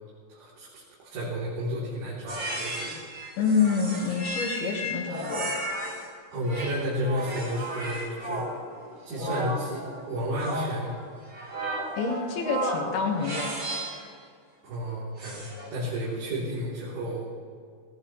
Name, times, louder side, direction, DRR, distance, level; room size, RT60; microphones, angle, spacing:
voice 1, 0.3-0.7 1.1-2.9 6.3-8.4 9.1-11.0 14.6-15.4 15.7-17.3, equal, 75° right, -10 dB, 5.7 m, -32 dB
sound 1, 2.3-6.1 6.4-14.1 15.2-15.8, right 1 dB, 30° right, 3.6 m, -34 dB
voice 2, 3.4-5.5 12.0-13.5, left 5 dB, 65° left, 1 dB, 3.2 m, -27 dB
20.0 x 18.5 x 3.2 m, 2.1 s
omnidirectional pair, 5.5 m